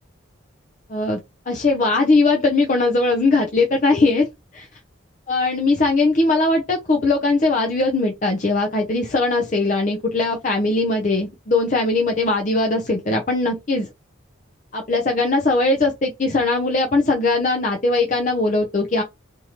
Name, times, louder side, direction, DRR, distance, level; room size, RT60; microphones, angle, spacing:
voice 1, 1.5-4.3 4.6-4.7 5.3-13.9 14.7-19.0, left 3 dB, 40° left, 0.6 m, -20 dB
3.6 x 2.8 x 2.9 m
head